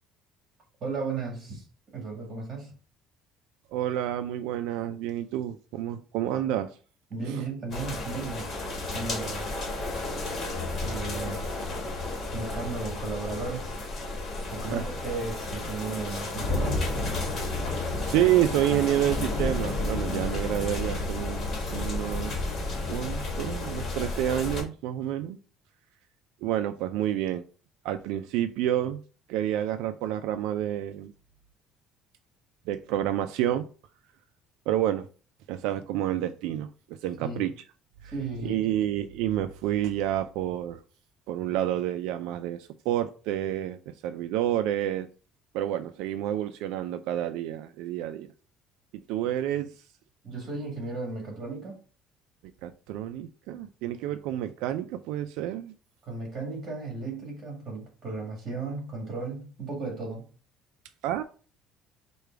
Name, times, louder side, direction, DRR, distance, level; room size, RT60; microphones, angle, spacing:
voice 1, 0.8-1.6 1.9-2.7 7.1-8.5 8.9-9.5 10.8-11.5 12.3-13.8 14.5-16.9 37.2-37.4 38.1-38.7 50.2-51.8 56.0-60.3, right 3 dB, 30° right, 1.9 m, -35 dB
voice 2, 3.7-6.7 7.3-7.4 14.7-14.9 18.0-22.3 22.9-25.4 26.4-27.5 27.8-29.0 29.3-31.1 32.7-33.7 34.7-35.1 35.5-37.5 38.0-38.1 38.4-40.8 41.3-45.1 45.5-48.3 49.1-49.7 52.6-55.7 61.0-61.2, right 12 dB, 80° right, 0.3 m, -29 dB
sound 1, 7.7-24.6, left 2 dB, 30° left, 1.3 m, -32 dB
4.9 x 2.3 x 4.6 m
cardioid pair, 180°, 0 cm